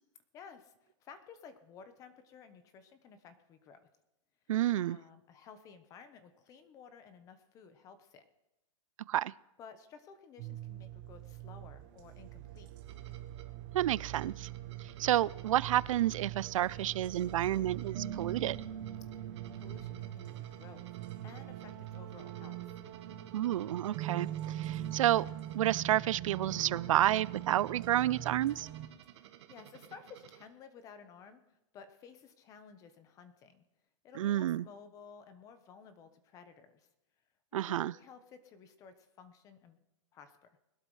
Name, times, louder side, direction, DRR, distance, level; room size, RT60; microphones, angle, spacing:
voice 1, 0.3-3.9 4.8-8.2 9.6-12.7 19.1-19.2 19.5-20.9 21.2-22.7 29.2-31.4 31.7-33.6 34.0-36.9 37.5-39.8 40.1-40.5, left 6 dB, 20° left, 10 dB, 1.0 m, -54 dB
voice 2, 4.5-5.0 9.1-9.3 13.7-14.5 14.8-18.7 23.3-25.3 25.5-28.7 34.2-34.7 37.5-37.9, right 13 dB, 80° right, 22 dB, 0.4 m, -30 dB
sound 1, 10.4-28.9, right 12 dB, 35° right, 1.1 m, -42 dB
sound 2, 12.8-30.4, right 11 dB, 55° right, 1.3 m, -57 dB
21.5 x 12.0 x 3.3 m, 0.90 s
supercardioid pair, 165°, 17 cm